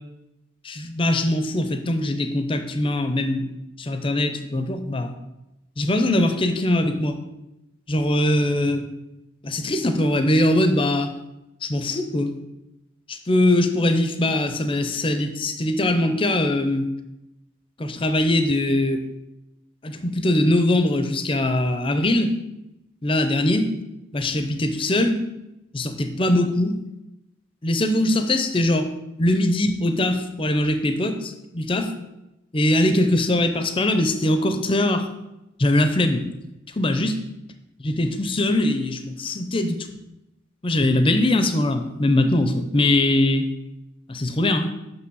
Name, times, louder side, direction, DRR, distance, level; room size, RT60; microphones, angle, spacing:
voice 1, 0.6-3.5 3.8-5.1 5.8-7.2 7.9-8.9 9.4-11.1 11.6-12.3 13.1-16.9 17.8-19.0 19.8-22.4 23.0-23.7 24.1-25.3 25.7-26.8 27.6-28.9 29.2-31.9 32.5-35.0 35.6-36.2 36.8-37.1 37.8-39.8 40.6-43.5 44.1-44.7, left 1 dB, 30° left, 8 dB, 0.7 m, -21 dB
6.1 x 5.9 x 6.2 m, 0.92 s
head